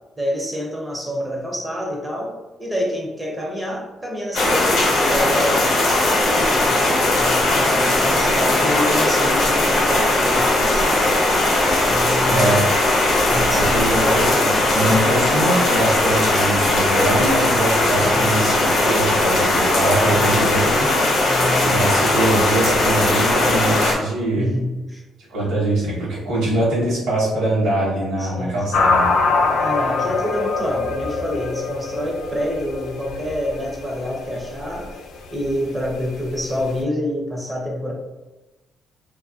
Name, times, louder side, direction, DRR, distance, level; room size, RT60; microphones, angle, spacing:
voice 1, 0.2-10.9 11.9-12.6 13.3-14.6 14.9-15.3 18.0-18.3 20.0-20.4 21.3-21.9 24.4-25.0 25.4-25.6 28.2-28.7 29.6-34.9 35.3-37.9, equal, 10° right, -2 dB, 0.4 m, -27 dB
sound 1, 4.3-23.9, left 2 dB, 55° left, 0.7 m, -18 dB
voice 2, 12.2-12.6 13.5-20.9 21.6-24.5 25.3-29.0, right 1 dB, 70° right, -7 dB, 0.9 m, -22 dB
sound 2, 28.7-36.8, left 4 dB, 75° left, 0.3 m, -24 dB
2.8 x 2.3 x 2.5 m, 1.1 s
cardioid pair, 170°, 0 cm